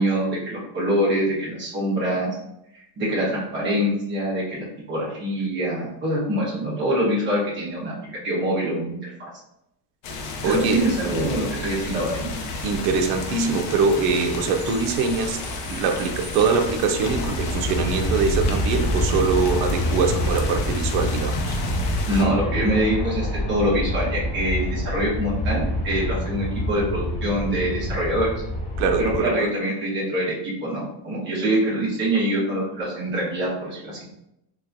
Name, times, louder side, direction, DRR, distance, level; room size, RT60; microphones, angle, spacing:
voice 1, 0.0-2.3 2.7-7.9 8.2-9.3 10.4-12.3 22.1-28.3 29.0-34.0, right 1 dB, 25° right, -6 dB, 1.1 m, -24 dB
sound 1, 10.0-22.2, left 3 dB, 60° left, 0.7 m, -33 dB
Bus / Idling / Screech, 10.1-18.1, right 1 dB, 40° right, 0.7 m, -41 dB
voice 2, 10.4-10.8 12.6-15.4 15.7-21.6 28.8-29.5, right 5 dB, 85° right, 6 dB, 0.7 m, -23 dB
Aircraft, 17.0-29.2, left 1 dB, 15° left, 0.4 m, -26 dB
3.5 x 3.1 x 2.5 m, 0.84 s
cardioid pair, 165°, 49 cm